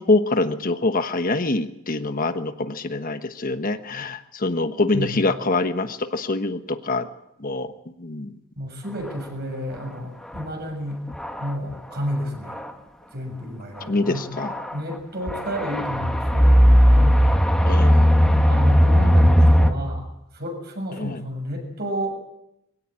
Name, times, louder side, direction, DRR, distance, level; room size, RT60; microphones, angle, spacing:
voice 1, 0.0-7.1 7.4-7.7 8.0-8.3 13.9-14.7 17.7-18.1 21.0-21.2, left 2 dB, 40° left, 8 dB, 1.2 m, -24 dB
voice 2, 8.6-11.0 11.4-12.6 13.1-14.3 14.7-17.5 18.5-20.0 20.3-22.1, equal, 50° right, 3 dB, 7.2 m, -31 dB
sound 1, 10.4-10.5 11.1-11.5 12.5-12.6 14.4-14.7 15.3-19.7, equal, 5° left, 1.7 m, -16 dB
23.0 x 17.0 x 8.9 m, 0.86 s
head